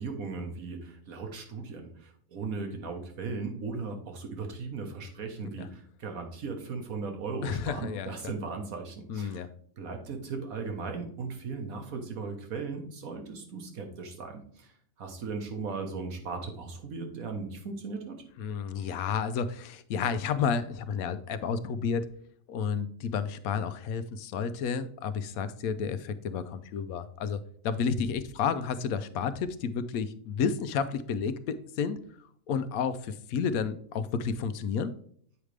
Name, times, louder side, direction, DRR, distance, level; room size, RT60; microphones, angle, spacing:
voice 1, 0.0-9.5 9.8-14.7 15.0-18.2, right 4 dB, 80° right, 4 dB, 1.6 m, -37 dB
voice 2, 7.4-8.1 9.1-9.5 18.4-22.1 22.5-32.0 32.5-34.9, left 6 dB, 85° left, 12 dB, 1.0 m, -31 dB
8.1 x 5.0 x 3.2 m, 0.62 s
omnidirectional pair, 1.4 m